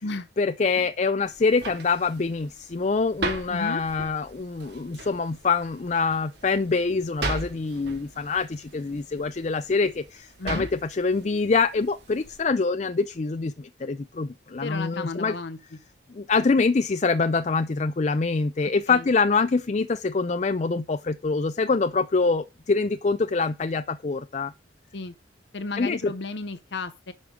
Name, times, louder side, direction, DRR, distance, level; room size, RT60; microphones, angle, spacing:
voice 1, 0.4-15.3 16.1-24.5 25.8-26.0, left 4 dB, 35° left, 0.4 m, -25 dB
sound 1, 1.3-12.4, right 2 dB, 60° right, 3.7 m, -38 dB
voice 2, 3.5-3.8 10.4-10.7 14.6-15.6 18.9-19.0 24.9-25.1 25.5-27.1, left 3 dB, 65° left, 0.7 m, -33 dB
11.0 x 5.1 x 6.2 m
head